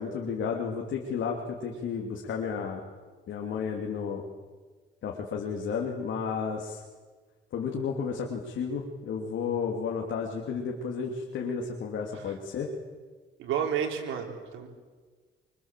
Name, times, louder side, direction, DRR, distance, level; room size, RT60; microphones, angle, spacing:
voice 1, 0.0-2.8 3.3-4.2 5.0-6.8 7.5-12.7, left 6 dB, 70° left, 0 dB, 3.3 m, -32 dB
voice 2, 13.4-14.7, right 8 dB, 85° right, 2 dB, 4.5 m, -31 dB
26.0 x 25.0 x 7.7 m, 1.4 s
cardioid pair, 90°, 20 cm